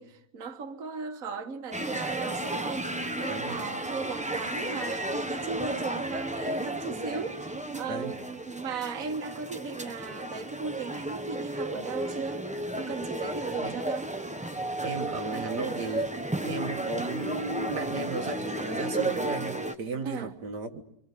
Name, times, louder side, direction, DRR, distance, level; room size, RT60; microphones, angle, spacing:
voice 1, 0.0-12.4 12.8-14.1 20.0-20.3, right 5 dB, 55° right, 1.8 m, -36 dB
sound 1, 1.7-19.8, right 1 dB, 5° right, 0.8 m, -33 dB
voice 2, 7.9-8.2 13.6-13.8 14.8-16.1 16.4-20.8, right 3 dB, 75° right, 2.2 m, -35 dB
27.5 x 25.0 x 8.4 m
omnidirectional pair, 1.8 m